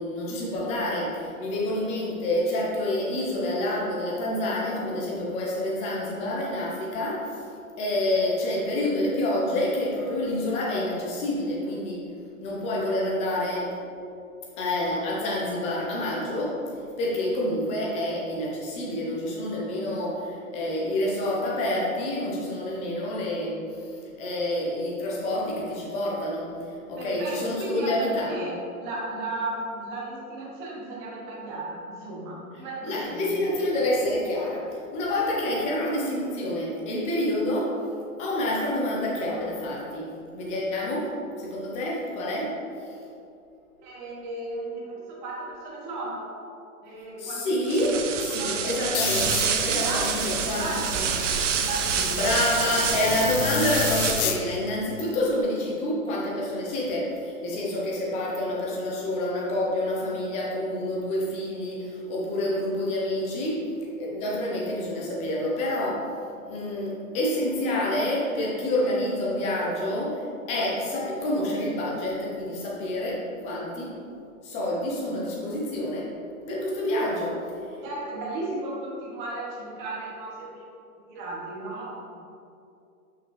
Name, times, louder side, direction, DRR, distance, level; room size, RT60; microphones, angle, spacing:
voice 1, 0.0-7.4 7.8-12.0 12.4-13.7 14.6-16.6 17.0-28.6 32.8-37.7 38.2-41.1 41.4-42.5 42.8-42.9 47.2-50.7 52.1-63.7 64.0-66.1 66.4-73.9 74.4-76.1 76.5-77.4, left 1 dB, 15° left, -4 dB, 0.8 m, -28 dB
voice 2, 27.0-33.5 43.8-46.4 46.8-47.5 48.2-49.0 49.6-52.3 52.9-53.0 77.8-80.6 80.9-82.0, right 2 dB, 30° right, -4 dB, 1.4 m, -35 dB
sound 1, 47.6-54.5, right 7 dB, 55° right, 0.6 m, -28 dB
sound 2, 48.9-54.4, left 7 dB, 70° left, 0.7 m, -32 dB
5.8 x 5.4 x 3.2 m, 2.5 s
hypercardioid pair, 145°, 44 cm